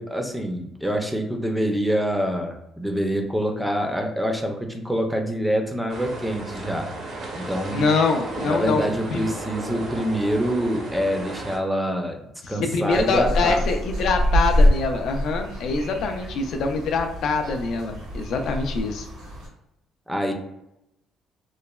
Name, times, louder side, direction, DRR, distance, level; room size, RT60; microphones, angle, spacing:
voice 1, 0.0-6.9 7.3-7.9 8.4-13.6 20.1-20.3, equal, 5° right, 3 dB, 0.4 m, -26 dB
sound 1, 5.9-11.6, right 2 dB, 55° right, 0.6 m, -35 dB
voice 2, 7.7-8.8 9.1-9.3 12.6-19.1, left 4 dB, 70° left, 5 dB, 0.3 m, -24 dB
sound 2, 12.9-19.5, equal, 90° right, 1.2 m, -25 dB
3.0 x 2.1 x 2.2 m, 0.85 s
cardioid pair, 105°, 0 cm